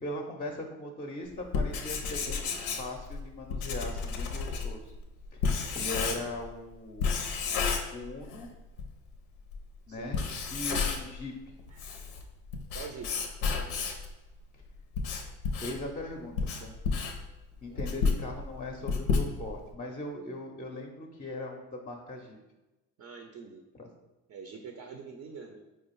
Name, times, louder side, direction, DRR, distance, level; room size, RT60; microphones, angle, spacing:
voice 1, 0.0-2.5 2.8-4.9 5.3-5.5 5.7-7.2 7.9-8.5 9.9-11.3 15.6-16.7 17.6-22.4 23.7-23.9, left 1 dB, 20° left, 2 dB, 0.5 m, -39 dB
Writing, 1.4-6.5 7.0-8.5 8.8-8.9 9.5-9.6 10.0-11.2 11.6-14.1 14.7-19.7, left 5 dB, 90° left, 0.6 m, -31 dB
voice 2, 12.7-13.1 17.7-17.8 23.0-23.6 24.3-25.6, right 5 dB, 40° right, 4 dB, 0.5 m, -44 dB
4.5 x 2.4 x 3.0 m, 1.1 s
hypercardioid pair, 60°, 42 cm